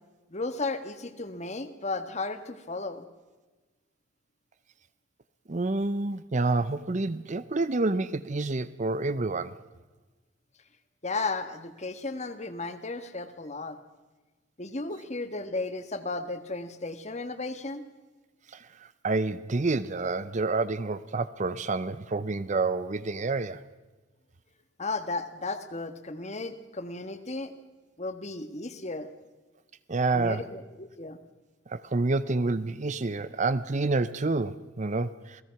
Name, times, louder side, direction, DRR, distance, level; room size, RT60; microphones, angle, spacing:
voice 1, 0.3-3.1 11.0-13.8 14.6-17.8 24.8-27.5 28.0-29.1 30.1-31.2, left 3 dB, 35° left, 1.5 m, -34 dB
voice 2, 5.5-9.6 18.5-23.6 29.9-30.5 31.7-35.4, right 3 dB, 35° right, 0.6 m, -28 dB
28.0 x 18.5 x 5.8 m
head